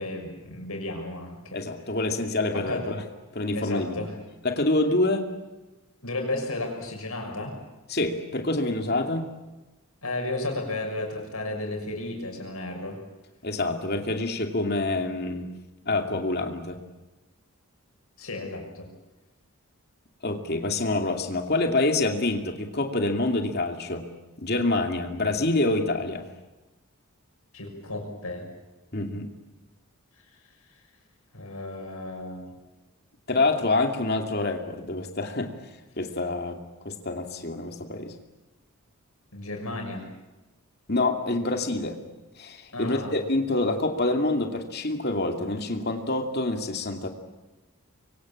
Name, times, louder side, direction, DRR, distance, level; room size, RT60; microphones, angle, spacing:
voice 1, 0.0-1.6 2.5-2.9 3.5-4.2 6.0-7.6 10.0-13.0 18.2-18.9 27.5-28.5 31.3-32.6 39.3-40.1 42.7-43.2, left 2 dB, 80° left, 3 dB, 6.4 m, -33 dB
voice 2, 1.5-3.0 3.3-4.0 4.4-5.3 7.9-9.3 13.4-15.5 15.8-16.8 20.2-24.1 24.4-26.3 28.9-29.3 33.3-35.5 36.0-38.1 40.9-42.0 42.4-47.1, left 2 dB, 45° left, 4 dB, 2.6 m, -26 dB
25.5 x 23.5 x 8.7 m, 1.1 s
head